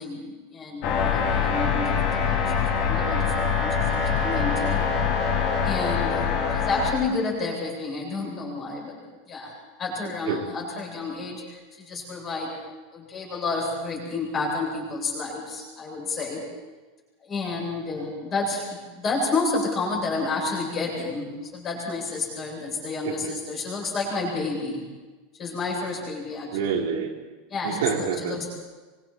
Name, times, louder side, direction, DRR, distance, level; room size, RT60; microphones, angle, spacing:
voice 1, 0.0-4.9 5.6-9.0 9.3-9.5 9.8-12.6 12.9-16.4 17.2-24.8 25.4-26.6 27.5-27.8 28.3-28.5, left 3 dB, 20° left, -3 dB, 7.9 m, -30 dB
sound 1, 0.8-6.9, left 6 dB, 40° left, 4.0 m, -24 dB
voice 2, 10.0-10.4 23.0-23.3 26.5-27.3 27.6-28.4, right 6 dB, 75° right, -1 dB, 4.2 m, -28 dB
26.0 x 25.0 x 4.6 m, 1.3 s
supercardioid pair, 180°, 0 cm